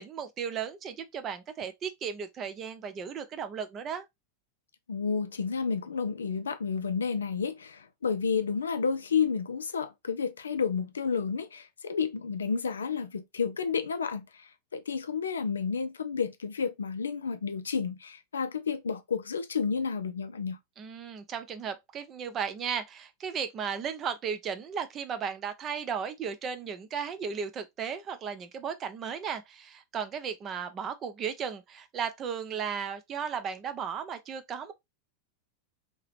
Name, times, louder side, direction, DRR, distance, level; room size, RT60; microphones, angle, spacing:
voice 1, 0.0-4.1 20.8-34.7, right 7 dB, 30° right, 0.5 m, -35 dB
voice 2, 4.9-20.6, left 6 dB, 70° left, 0.4 m, -31 dB
2.9 x 2.8 x 3.1 m
figure-of-eight pair, 90°, 0 cm